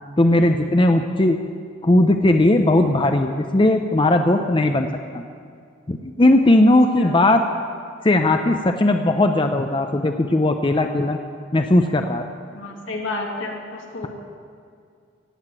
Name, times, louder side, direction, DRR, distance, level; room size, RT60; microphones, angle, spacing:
voice 1, 0.2-1.4 1.8-4.9 5.1-5.2 5.9-7.4 8.0-11.2 11.5-12.2, left 1 dB, 25° left, 6 dB, 0.6 m, -17 dB
voice 2, 12.5-14.1, left 2 dB, 80° left, -1 dB, 2.7 m, -31 dB
17.5 x 8.0 x 8.9 m, 2.3 s
head